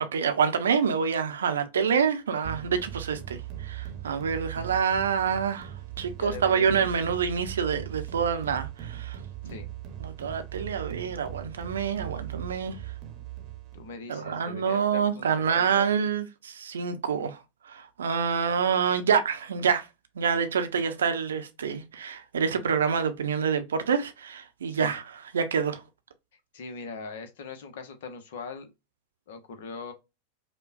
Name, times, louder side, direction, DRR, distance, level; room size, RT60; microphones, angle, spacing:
voice 1, 0.1-5.7 6.0-9.2 9.4-9.5 10.0-12.7 14.1-17.4 17.7-19.9 20.2-25.0 25.3-25.8, right 6 dB, 65° right, 0.6 m, -27 dB
sound 1, 2.4-13.9, right 12 dB, 35° right, 0.9 m, -39 dB
voice 2, 6.2-6.9 9.5-9.7 13.7-15.9 24.7-24.9 26.5-28.7 29.3-29.9, left 5 dB, 55° left, 0.9 m, -41 dB
5.1 x 2.2 x 2.4 m
figure-of-eight pair, 90°, 0 cm